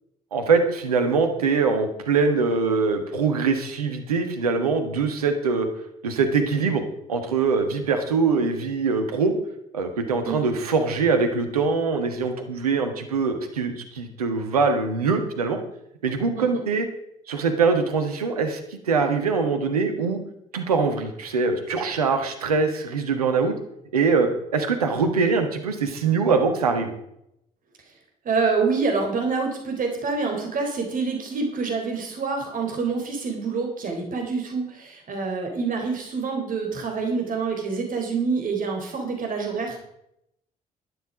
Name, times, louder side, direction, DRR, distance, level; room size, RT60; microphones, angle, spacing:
voice 1, 0.3-5.7 6.0-9.3 9.7-15.6 16.0-16.9 17.3-20.2 20.5-23.5 23.9-26.9, right 4 dB, 85° right, 6 dB, 1.5 m, -23 dB
voice 2, 28.2-39.8, right 4 dB, 45° right, 2 dB, 3.6 m, -26 dB
12.0 x 11.5 x 5.0 m, 0.77 s
figure-of-eight pair, 45°, 19 cm